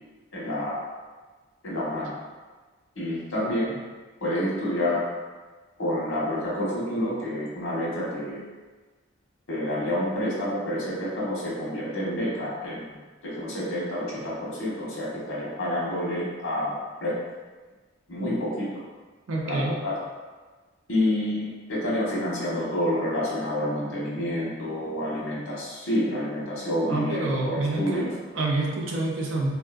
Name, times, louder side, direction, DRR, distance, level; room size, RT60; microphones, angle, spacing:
voice 1, 0.3-0.8 1.6-2.1 3.0-3.7 4.2-5.0 5.8-8.4 9.5-13.0 13.2-16.7 17.0-17.2 18.1-18.7 19.4-19.9 20.9-28.1, left 1 dB, 90° left, -6 dB, 1.1 m, -28 dB
voice 2, 19.3-19.8 26.9-29.5, right 2 dB, 75° right, -2 dB, 0.6 m, -27 dB
3.6 x 2.6 x 2.4 m, 1.3 s
head